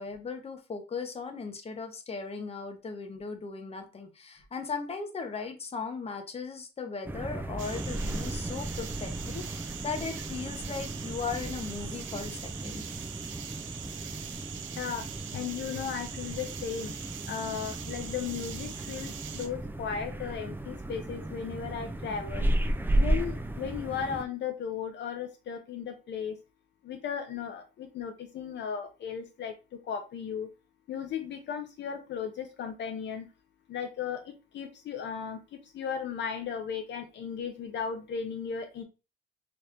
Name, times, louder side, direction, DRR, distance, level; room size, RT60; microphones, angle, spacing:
voice 1, 0.0-12.8, left 5 dB, 30° left, 5 dB, 0.8 m, -37 dB
sound 1, 7.0-24.2, right 1 dB, 10° right, 0.4 m, -34 dB
sound 2, 7.6-19.5, right 9 dB, 75° right, 0.6 m, -42 dB
voice 2, 15.3-16.9 17.3-22.5 23.0-26.4 26.8-29.5 29.8-30.5 30.9-33.3 33.7-38.8, left 7 dB, 65° left, 6 dB, 0.6 m, -36 dB
3.0 x 2.5 x 3.3 m, 0.30 s
cardioid pair, 90°, 20 cm